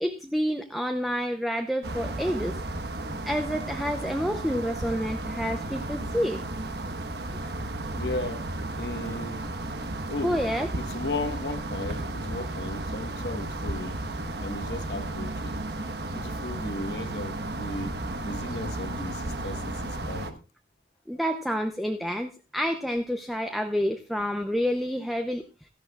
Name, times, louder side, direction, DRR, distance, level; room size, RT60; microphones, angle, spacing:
voice 1, 0.0-2.5 3.2-6.4 10.2-10.7 21.1-25.4, equal, ahead, 0.6 m, -28 dB
sound 1, 1.8-20.3, right 2 dB, 75° right, 1.2 m, -34 dB
voice 2, 7.9-8.5 8.8-9.5 10.1-10.4 10.7-14.0 14.3-15.6 16.1-17.9 18.2-20.4, left 2 dB, 80° left, 1.3 m, -35 dB
16.5 x 13.0 x 2.4 m
head